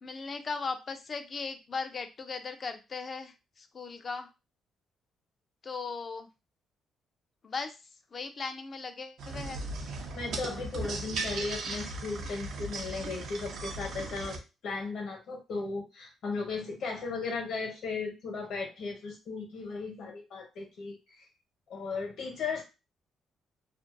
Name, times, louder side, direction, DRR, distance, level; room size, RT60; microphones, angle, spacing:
voice 1, 0.0-4.3 5.6-6.3 7.4-7.8 8.1-9.6, left 4 dB, 40° left, 8 dB, 0.4 m, -38 dB
sound 1, 9.2-14.4, right 3 dB, 70° right, 0.6 m, -37 dB
voice 2, 10.1-21.3 21.7-22.6, left 4 dB, 70° left, 2 dB, 1.0 m, -36 dB
2.5 x 2.2 x 2.5 m, 0.27 s
cardioid pair, 90°, 0 cm